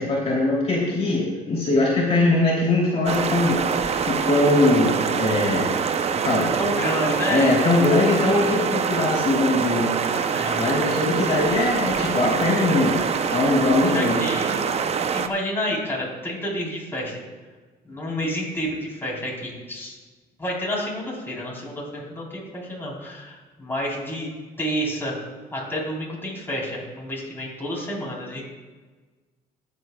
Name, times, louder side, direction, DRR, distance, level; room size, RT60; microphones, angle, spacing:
voice 1, 0.0-3.6 4.0-5.7 6.2-6.5 7.3-9.9 10.6-14.2, left 2 dB, 35° left, -4 dB, 3.0 m, -21 dB
sound 1, 3.0-15.3, right 6 dB, 40° right, 0.6 m, -25 dB
voice 2, 6.6-8.2 10.0-11.0 13.5-14.7 15.1-17.2 17.8-20.0 20.4-24.3 24.6-25.2 25.5-28.4, equal, 15° left, -4 dB, 3.7 m, -30 dB
20.0 x 8.3 x 2.3 m, 1.3 s
cardioid pair, 110°, 17 cm